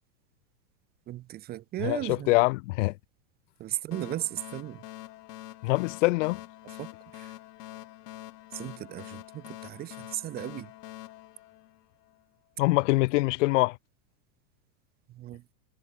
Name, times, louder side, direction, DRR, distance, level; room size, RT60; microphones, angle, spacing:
voice 1, 1.1-2.4 3.6-4.8 6.8-7.3 8.5-10.7 15.1-15.4, right 14 dB, 20° right, 0.8 m, -36 dB
voice 2, 1.8-3.0 5.6-6.4 12.6-13.8, left 22 dB, 50° left, 1.4 m, -24 dB
sound 1, 3.9-12.2, left 16 dB, 70° left, 1.7 m, -45 dB
supercardioid pair, 160°, 49 cm